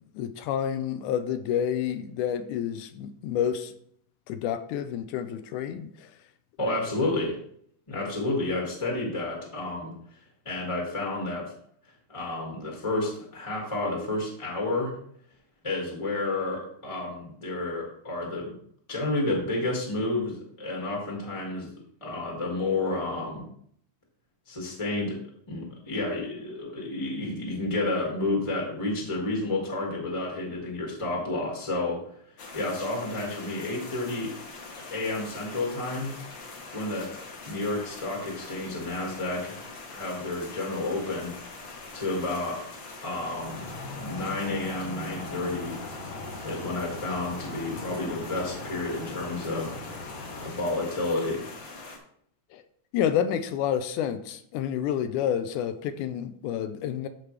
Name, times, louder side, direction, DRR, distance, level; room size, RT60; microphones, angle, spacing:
voice 1, 0.1-3.7 4.3-6.1 52.5-52.6 52.9-57.1, left 9 dB, 80° left, 2.0 m, -29 dB
voice 2, 6.6-7.4 7.9-9.9 10.4-11.5 12.1-14.9 15.6-18.5 18.9-21.7 22.0-23.5 24.5-25.2 25.5-32.0 32.5-34.3 34.9-36.2 36.7-39.6 39.9-41.4 41.9-42.6 43.0-43.7 43.9-45.8 46.4-49.8 50.4-51.5, left 2 dB, 15° left, 1.4 m, -30 dB
sound 1, 32.4-52.0, left 3 dB, 50° left, 1.6 m, -43 dB
sound 2, 43.4-50.5, left 2 dB, 65° left, 3.0 m, -40 dB
12.5 x 5.2 x 3.3 m
omnidirectional pair, 3.5 m